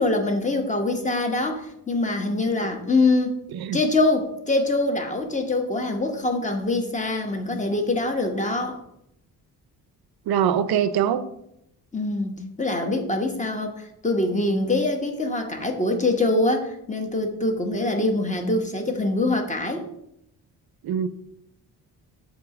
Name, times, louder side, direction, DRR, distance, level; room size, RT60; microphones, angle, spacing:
voice 1, 0.0-3.4 3.7-8.8 11.9-19.9, left 2 dB, 20° left, 1.1 m, -24 dB
voice 2, 10.3-11.2 20.8-21.1, right 9 dB, 75° right, 0.6 m, -23 dB
7.3 x 2.8 x 5.9 m
cardioid pair, 90°, 38 cm